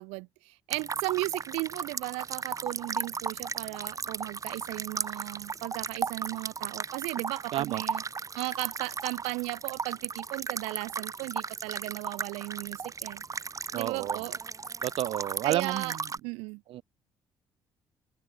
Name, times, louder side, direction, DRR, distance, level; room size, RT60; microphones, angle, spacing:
voice 1, 0.0-8.0 8.3-13.2 13.7-14.3 15.4-16.0 16.2-16.6, right 28 dB, 85° right, 1.6 m, -36 dB
sound 1, 0.7-16.2, right 5 dB, 35° right, 1.6 m, -36 dB
voice 2, 7.5-7.8 13.7-14.2 14.8-15.9 16.7-16.8, right 13 dB, 70° right, 0.9 m, -31 dB
open air
supercardioid pair, 60°, 10 cm